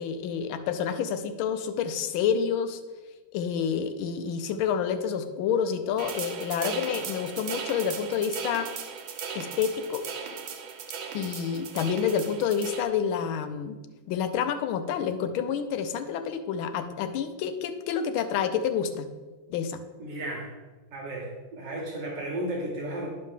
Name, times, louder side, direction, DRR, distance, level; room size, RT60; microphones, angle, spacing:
voice 1, 0.0-2.8 3.3-8.7 9.3-10.0 11.1-13.8 14.1-19.1 19.5-19.8, left 7 dB, 90° left, 9 dB, 1.5 m, -28 dB
sound 1, 6.0-12.8, right 6 dB, 90° right, 1.7 m, -37 dB
voice 2, 20.0-20.5 20.9-21.3 21.6-23.1, right 1 dB, 65° right, -2 dB, 1.7 m, -33 dB
9.3 x 6.4 x 3.6 m, 1.3 s
omnidirectional pair, 2.2 m